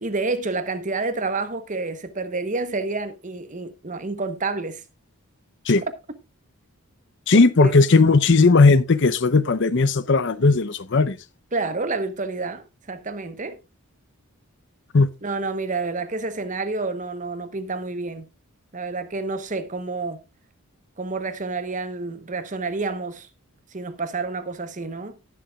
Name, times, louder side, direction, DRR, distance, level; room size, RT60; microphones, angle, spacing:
voice 1, 0.0-4.8 7.6-7.7 11.5-13.6 15.2-18.3 18.7-20.2 21.0-23.3 23.7-25.2, right 3 dB, 35° right, 1.0 m, -29 dB
voice 2, 7.3-11.2 14.9-15.1, left 3 dB, 55° left, 0.6 m, -17 dB
18.0 x 7.1 x 2.4 m
head